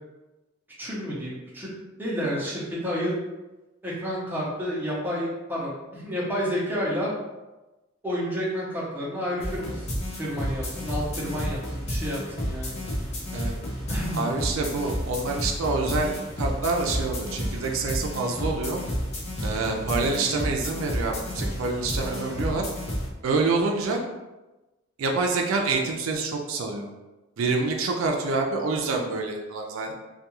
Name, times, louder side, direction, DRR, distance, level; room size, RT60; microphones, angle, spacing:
voice 1, 0.8-1.7 2.0-3.1 3.8-7.1 8.0-9.9 10.2-12.8 13.9-14.3, equal, 10° right, -6 dB, 0.6 m, -30 dB
sound 1, 9.4-23.1, equal, 35° left, 0.6 m, -31 dB
voice 2, 14.1-18.8 19.4-22.7 23.2-24.0 25.0-26.9 27.4-29.9, right 3 dB, 90° right, 1 dB, 0.4 m, -27 dB
2.3 x 2.3 x 2.9 m, 1.1 s
head